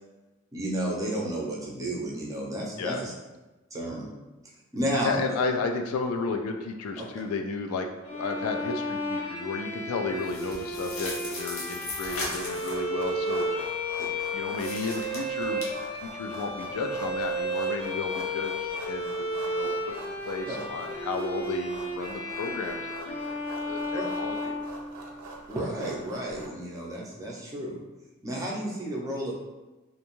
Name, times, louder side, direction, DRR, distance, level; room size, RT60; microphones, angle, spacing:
voice 1, 0.5-3.1 3.7-4.1 4.7-5.2 7.0-7.1 14.0-14.1 20.5-20.6 23.9-24.0 25.5-27.8 28.2-29.3, right 1 dB, 15° right, -3 dB, 0.5 m, -32 dB
voice 2, 5.0-13.7 14.3-15.7 16.1-24.5, left 4 dB, 90° left, 5 dB, 0.3 m, -33 dB
Bowed string instrument, 8.0-25.3, equal, 30° left, 0.7 m, -33 dB
sound 1, 10.2-12.8 14.5-15.6, left 2 dB, 70° left, 0.7 m, -37 dB
sound 2, 12.1-26.5, right 2 dB, 75° right, 0.4 m, -44 dB
2.5 x 2.2 x 2.9 m, 1.1 s
head